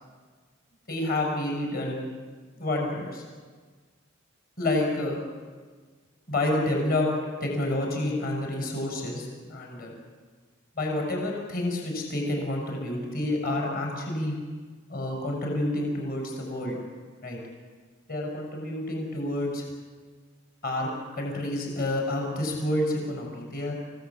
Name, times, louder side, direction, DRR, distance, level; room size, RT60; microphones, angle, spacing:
voice 1, 0.9-2.0 2.6-3.2 4.6-5.2 6.3-7.1 7.4-9.9 10.8-14.4 14.9-16.8 17.2-17.4 18.1-19.7 20.6-23.7, left 1 dB, 45° left, 0 dB, 6.8 m, -29 dB
29.0 x 17.5 x 8.7 m, 1.5 s
head